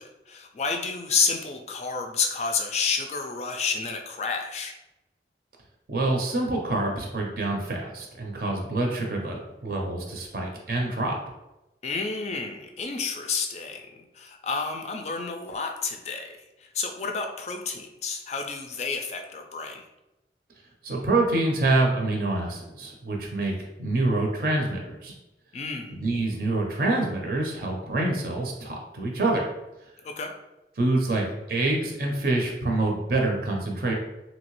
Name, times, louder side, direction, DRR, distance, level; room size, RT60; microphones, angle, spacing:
voice 1, 0.0-4.7 11.8-16.3 16.6-19.8 25.5-25.9 30.0-30.3, left 5 dB, 40° left, 4 dB, 0.3 m, -30 dB
voice 2, 5.9-11.2 20.8-23.5 23.8-25.1 25.9-29.4 30.8-33.9, right 2 dB, 55° right, 0 dB, 0.6 m, -26 dB
3.0 x 2.7 x 3.0 m, 0.98 s
head